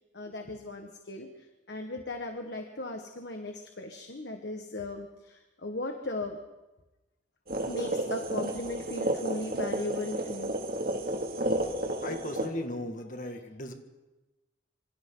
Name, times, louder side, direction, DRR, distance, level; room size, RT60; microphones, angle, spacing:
voice 1, 0.1-6.4 7.7-10.6, left 2 dB, 65° left, 4 dB, 1.7 m, -37 dB
sound 1, 7.5-12.5, right 1 dB, 50° right, 2.6 m, -32 dB
voice 2, 12.0-13.7, left 1 dB, 45° left, 5 dB, 2.1 m, -36 dB
27.0 x 25.0 x 4.0 m, 1.1 s
head